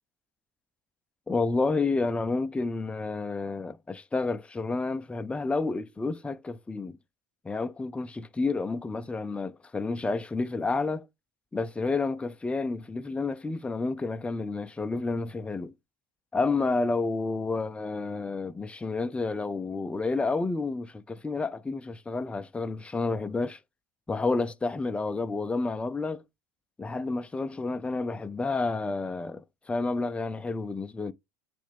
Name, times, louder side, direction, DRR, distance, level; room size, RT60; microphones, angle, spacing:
voice 1, 1.3-7.0 7.4-11.1 11.5-15.7 16.3-23.6 24.1-26.2 26.8-31.1, left 3 dB, 10° left, 0.5 m, -30 dB
8.2 x 3.3 x 3.4 m
hypercardioid pair, 80°, 11 cm